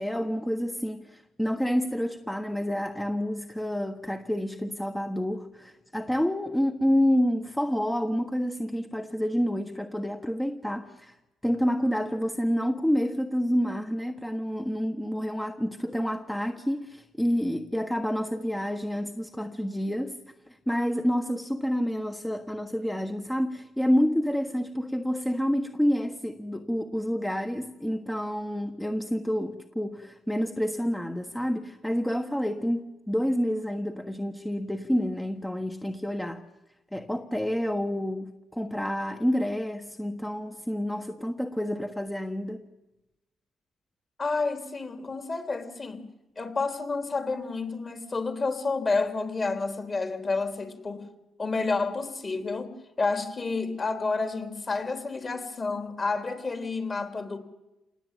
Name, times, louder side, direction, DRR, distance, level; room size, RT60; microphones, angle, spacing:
voice 1, 0.0-11.2 11.4-20.2 20.7-36.4 36.9-38.3 38.5-42.6, equal, 5° left, 1.4 m, -28 dB
voice 2, 44.2-46.0 46.4-51.1 51.4-52.7 53.0-57.4, left 3 dB, 35° left, 3.6 m, -30 dB
27.0 x 19.0 x 9.2 m
cardioid pair, 80°, 0 cm